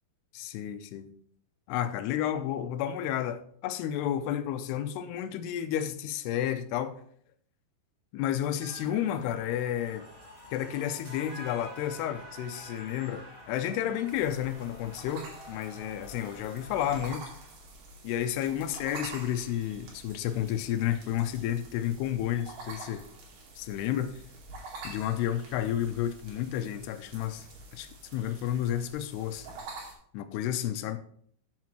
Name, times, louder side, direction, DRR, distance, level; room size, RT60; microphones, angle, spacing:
voice 1, 0.3-1.1 1.7-7.0 8.1-10.1 10.5-17.2 18.0-23.0 23.6-24.2 24.8-27.5 27.7-29.5 30.1-31.0, left 11 dB, 85° left, 2.8 m, -31 dB
sound 1, 8.6-17.1, equal, 15° right, 3.4 m, -48 dB
sound 2, 14.1-29.9, right 2 dB, 75° right, 4.5 m, -47 dB
13.5 x 8.4 x 3.1 m
omnidirectional pair, 4.7 m